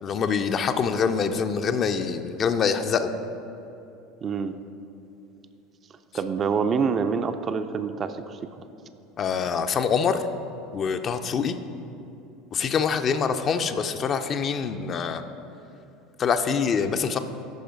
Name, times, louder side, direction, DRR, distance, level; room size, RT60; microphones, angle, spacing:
voice 1, 0.0-3.1 9.2-10.3 10.7-11.6 12.5-15.2 16.2-17.2, left 6 dB, 35° left, 8 dB, 0.4 m, -25 dB
voice 2, 4.2-4.5 6.1-8.4, right 5 dB, 35° right, 9 dB, 0.4 m, -26 dB
10.5 x 4.9 x 3.8 m, 2.8 s
figure-of-eight pair, 70°, 0 cm